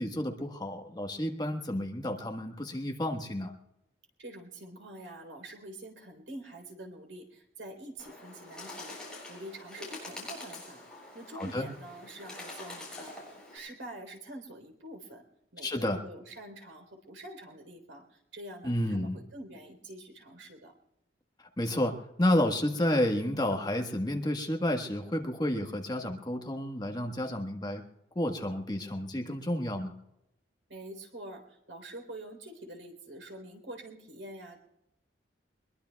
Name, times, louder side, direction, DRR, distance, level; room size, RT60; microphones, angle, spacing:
voice 1, 0.0-3.5 11.3-11.7 15.6-16.0 18.6-19.2 21.4-27.8 28.1-29.9, left 1 dB, 20° left, 3 dB, 1.3 m, -31 dB
voice 2, 4.2-9.0 9.3-10.9 11.1-15.2 15.5-20.7 30.7-34.6, right 1 dB, 80° right, 4 dB, 3.7 m, -46 dB
Bird, 8.0-13.6, left 2 dB, 5° left, 7.7 m, -45 dB
23.5 x 21.5 x 2.3 m, 0.85 s
head